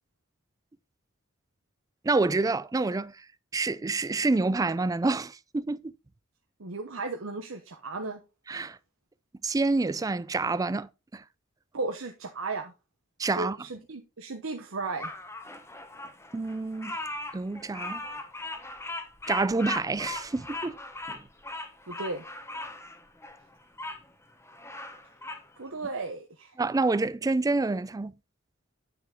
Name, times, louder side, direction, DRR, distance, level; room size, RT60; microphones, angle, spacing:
voice 1, 2.0-3.1 3.5-5.9 8.5-8.8 9.4-11.2 13.2-13.6 16.3-17.0 17.3-18.0 19.3-20.8 21.1-21.2 26.6-28.1, right 3 dB, 15° right, 0.3 m, -27 dB
voice 2, 6.6-8.2 11.7-12.7 13.4-15.1 21.9-22.2 25.6-26.6, right 3 dB, 90° right, 1.0 m, -35 dB
Bird vocalization bird call bird song, 15.0-24.0 24.4-25.5, left 2 dB, 15° left, 1.1 m, -39 dB
9.2 x 5.8 x 3.6 m
head